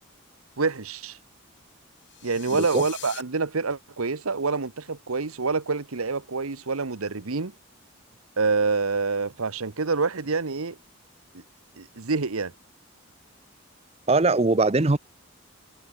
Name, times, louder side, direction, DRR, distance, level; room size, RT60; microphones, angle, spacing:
voice 1, 0.6-1.2 2.2-7.5 8.4-10.8 11.3-11.4 11.8-12.5, right 4 dB, 85° right, 1.1 m, -27 dB
sound 1, 2.0-3.2, left 12 dB, 55° left, 6.9 m, -41 dB
voice 2, 2.5-2.8 14.1-15.0, right 3 dB, 30° right, 0.7 m, -21 dB
head